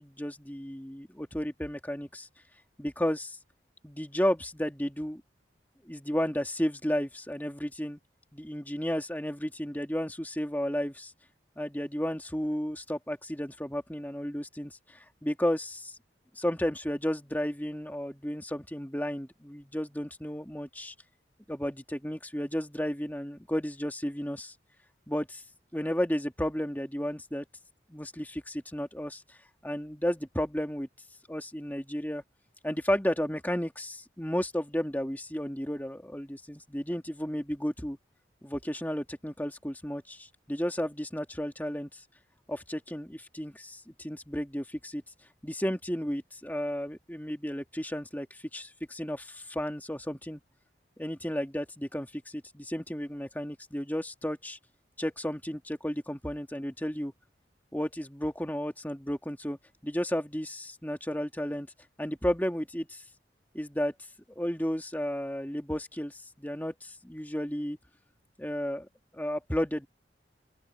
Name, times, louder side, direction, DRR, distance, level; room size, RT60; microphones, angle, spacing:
voice 1, 0.0-2.3 2.8-3.4 3.8-5.2 5.8-8.0 8.3-11.1 11.6-16.0 16.3-20.9 21.5-24.5 25.1-25.4 25.7-27.5 27.9-29.4 29.6-30.9 31.3-32.2 32.6-38.0 38.4-42.0 42.5-45.0 45.4-50.4 51.0-54.6 55.0-57.1 57.7-61.7 62.0-63.0 63.5-63.9 64.4-67.8 68.4-68.9 69.1-69.9, equal, 10° left, 2.5 m, -33 dB
open air
head